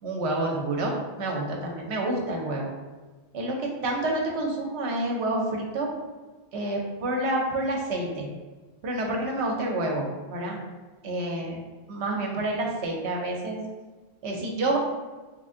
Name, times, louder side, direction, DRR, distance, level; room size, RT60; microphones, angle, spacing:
voice 1, 0.0-2.7 3.3-5.9 6.5-8.3 8.8-10.6 11.0-11.6 11.9-13.6 14.2-14.8, right 2 dB, 70° right, 0 dB, 1.0 m, -28 dB
3.3 x 2.5 x 3.6 m, 1.3 s
omnidirectional pair, 1.2 m